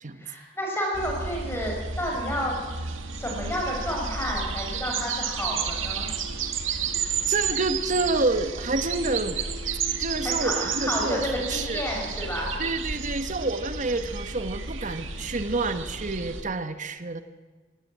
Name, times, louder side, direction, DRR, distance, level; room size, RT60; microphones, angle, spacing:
voice 1, 0.2-2.6 3.1-6.1 10.2-12.5, equal, 15° left, -1 dB, 6.0 m, -30 dB
sound 1, 0.9-16.4, right 6 dB, 80° right, 1.9 m, -32 dB
voice 2, 7.3-9.4 10.0-11.8 12.6-17.2, right 3 dB, 40° right, 9 dB, 1.2 m, -28 dB
17.5 x 17.0 x 8.7 m, 1.4 s
head